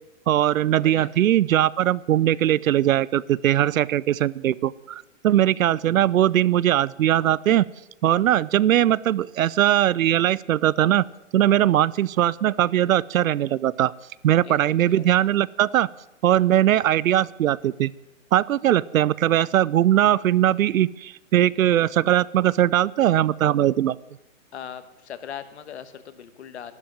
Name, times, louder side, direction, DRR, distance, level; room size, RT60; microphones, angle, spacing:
voice 1, 0.3-7.7 8.0-11.0 11.3-13.9 14.2-15.9 16.2-17.9 18.3-24.0, right 12 dB, 80° right, 22 dB, 0.6 m, -20 dB
voice 2, 0.8-1.1 14.4-14.6 14.9-15.1 24.5-26.7, left 9 dB, 55° left, 12 dB, 1.3 m, -39 dB
12.0 x 12.0 x 7.3 m, 0.95 s
hypercardioid pair, 175°, 40 cm